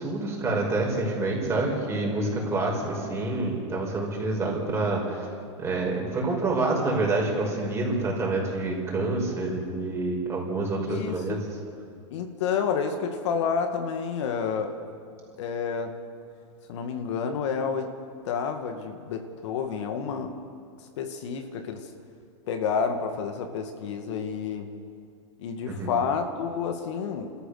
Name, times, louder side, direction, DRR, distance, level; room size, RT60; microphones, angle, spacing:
voice 1, 0.0-5.3 5.6-11.4 25.7-25.9, right 2 dB, 15° right, -1 dB, 5.3 m, -27 dB
voice 2, 10.9-11.4 12.1-14.7 15.4-16.0 16.7-17.9 18.2-20.4 21.0-21.9 22.5-24.7 25.4-27.3, left 6 dB, 65° left, 5 dB, 2.1 m, -29 dB
29.0 x 13.5 x 6.7 m, 2.4 s
supercardioid pair, 140°, 16 cm